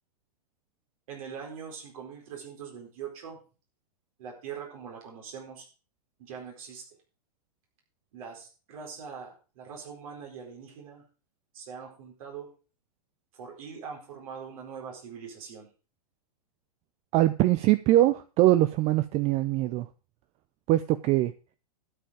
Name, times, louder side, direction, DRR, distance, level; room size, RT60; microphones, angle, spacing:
voice 1, 1.1-3.4 4.2-5.7 6.2-6.8 8.1-11.0 11.5-12.5 13.3-15.7, right 6 dB, 60° right, 1 dB, 4.3 m, -42 dB
voice 2, 17.1-19.9 20.7-21.3, right 15 dB, 35° right, 14 dB, 0.5 m, -22 dB
12.0 x 7.7 x 4.9 m, 0.35 s
hypercardioid pair, 115°, 20 cm